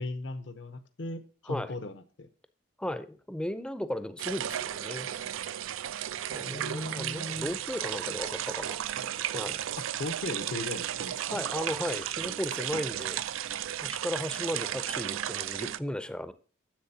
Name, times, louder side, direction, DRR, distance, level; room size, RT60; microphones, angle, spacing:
voice 1, 0.0-2.3 6.4-7.6 9.8-11.4, left 2 dB, 65° left, 0.8 m, -38 dB
voice 2, 2.8-5.1 6.3-8.8 9.3-9.6 11.3-13.2 13.8-16.3, left 1 dB, 5° left, 0.5 m, -35 dB
sound 1, 4.2-15.8, right 11 dB, 80° right, 0.4 m, -34 dB
10.5 x 7.6 x 2.8 m
head